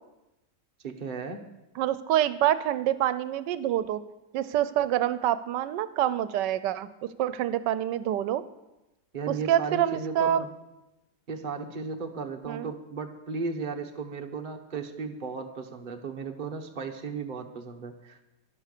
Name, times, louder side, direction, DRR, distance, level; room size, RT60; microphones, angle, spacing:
voice 1, 0.8-1.4 9.1-10.5 11.3-18.2, right 4 dB, 35° right, 4 dB, 1.1 m, -35 dB
voice 2, 1.8-4.0 4.3-8.4 9.3-10.4 12.5-12.7, right 11 dB, 85° right, 14 dB, 1.3 m, -26 dB
11.5 x 11.0 x 6.7 m, 0.98 s
omnidirectional pair, 1.8 m